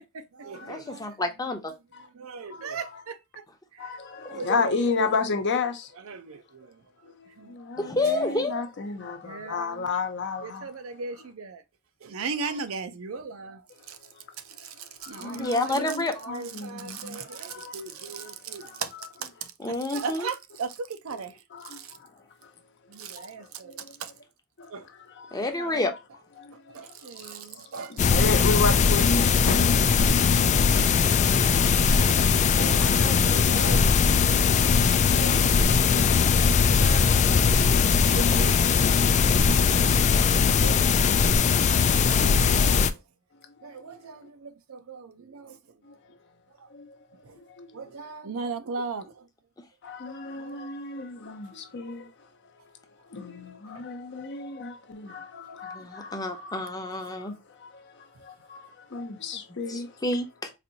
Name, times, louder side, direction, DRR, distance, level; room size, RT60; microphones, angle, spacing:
voice 1, 0.1-1.2 2.2-3.4 3.7-5.1 6.0-6.8 7.4-8.4 9.2-9.7 10.4-11.6 12.0-13.6 13.9-14.0 14.6-18.9 19.2-21.3 21.6-21.9 22.9-24.1 24.7-24.9 25.6-25.9 26.7-28.0 29.5-29.9 32.5-34.0 35.0-35.6 36.8-37.1 37.9-38.7 40.1-43.0 43.6-45.6 46.6-46.7 47.2-47.4 47.7-49.3 50.3-50.7, right 5 dB, 70° right, 0.5 m, -38 dB
voice 2, 0.7-1.7 4.5-4.6 7.8-8.6 15.2-16.2 19.6-20.3 25.3-25.9 55.7-57.3 59.7-60.5, left 2 dB, 20° left, 0.7 m, -29 dB
voice 3, 3.8-5.9 7.0-10.7 15.0-18.8 21.5-21.8 23.1-23.9 24.6-24.7 25.1-25.4 26.4-26.9 27.1-27.6 27.9-29.4 37.2-37.8 43.8-43.9 45.8-45.9 46.7-47.0 47.5-48.1 49.8-52.1 53.1-56.7 57.1-60.0, left 4 dB, 55° left, 0.7 m, -34 dB
sound 1, 28.0-42.9, left 6 dB, 35° left, 0.3 m, -20 dB
4.2 x 2.6 x 2.6 m
head